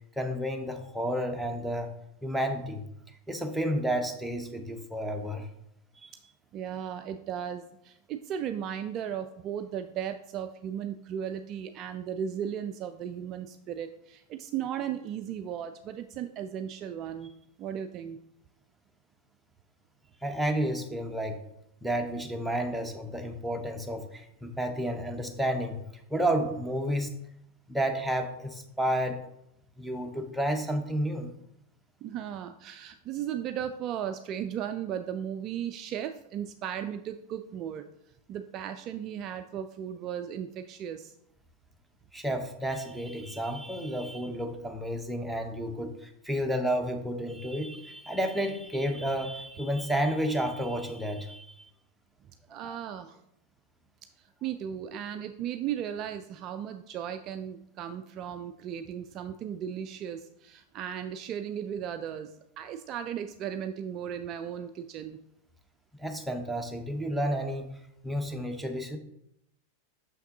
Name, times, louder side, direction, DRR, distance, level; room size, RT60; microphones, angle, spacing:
voice 1, 0.2-1.9 2.2-2.9 3.3-5.5 20.2-21.4 21.8-25.8 26.1-27.2 27.7-29.2 29.8-31.3 42.1-51.7 52.6-52.8 66.0-67.7 68.0-69.0, equal, 5° right, 4 dB, 0.7 m, -31 dB
voice 2, 6.5-17.3 17.6-18.2 32.0-37.8 38.3-41.1 52.5-53.2 54.2-65.2, right 9 dB, 35° right, 8 dB, 0.3 m, -36 dB
6.4 x 5.7 x 2.7 m, 0.77 s
figure-of-eight pair, 90°, 0 cm